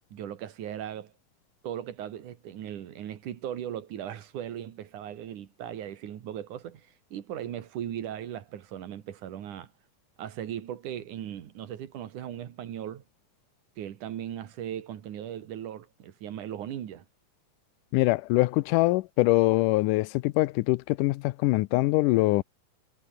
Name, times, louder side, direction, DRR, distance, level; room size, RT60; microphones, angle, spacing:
voice 1, 0.1-1.1 1.6-9.7 10.2-13.0 13.8-17.1, right 10 dB, 75° right, 3.2 m, -38 dB
voice 2, 17.9-22.4, left 20 dB, 85° left, 2.2 m, -23 dB
omnidirectional pair, 3.6 m